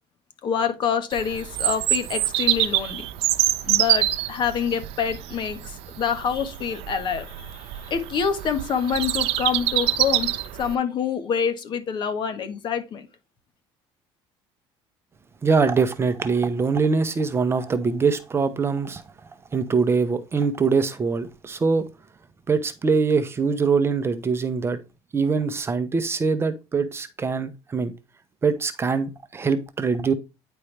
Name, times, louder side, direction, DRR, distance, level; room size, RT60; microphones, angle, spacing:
voice 1, 0.4-3.0 3.6-10.3 10.6-13.1, left 7 dB, 45° left, 1.4 m, -26 dB
Bird vocalization bird call bird song, 1.1-10.7, right 15 dB, 70° right, 0.7 m, -25 dB
voice 2, 15.4-19.0 19.5-21.8 22.5-24.8 25.1-27.9 28.4-30.1, right 5 dB, 25° right, 0.8 m, -23 dB
9.7 x 4.5 x 3.3 m
cardioid pair, 120°, 11 cm